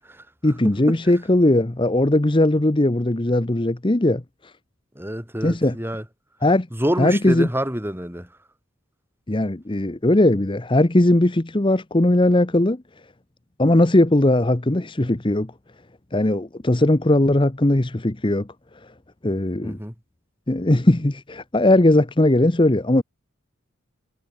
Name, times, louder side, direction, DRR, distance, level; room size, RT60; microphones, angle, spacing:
voice 1, 0.4-4.2 5.4-5.8 6.4-6.7 7.0-7.5 9.3-12.8 13.6-15.5 16.1-18.5 19.2-19.8 20.5-23.0, left 1 dB, 25° left, 0.9 m, -19 dB
voice 2, 5.0-6.0 6.7-8.3 19.6-19.9, equal, 10° right, 5.8 m, -26 dB
head